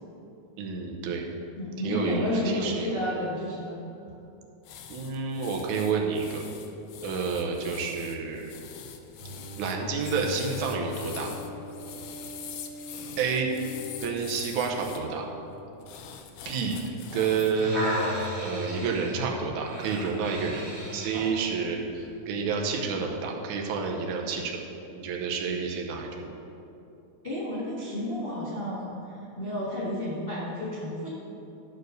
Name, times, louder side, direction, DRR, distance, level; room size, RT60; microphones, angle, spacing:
voice 1, 0.6-1.2 1.8-2.9 4.9-6.4 7.0-8.5 9.6-11.3 13.2-13.5 14.0-15.2 16.5-16.8 17.1-17.9 18.4-20.7 20.9-26.4, right 5 dB, 80° right, 0 dB, 2.3 m, -29 dB
voice 2, 1.6-3.7 27.2-29.0 29.4-31.1, left 1 dB, 55° left, -8 dB, 0.6 m, -31 dB
sound 1, 4.6-15.0 15.8-17.6 18.0-18.3, left 8 dB, 80° left, 1.4 m, -44 dB
Bowed string instrument, 9.2-16.4, left 2 dB, 55° right, 3.4 m, -42 dB
sound 2, 17.5-21.4 22.0-22.1, equal, 25° right, 1.3 m, -33 dB
11.0 x 4.6 x 6.4 m, 2.8 s
omnidirectional pair, 3.4 m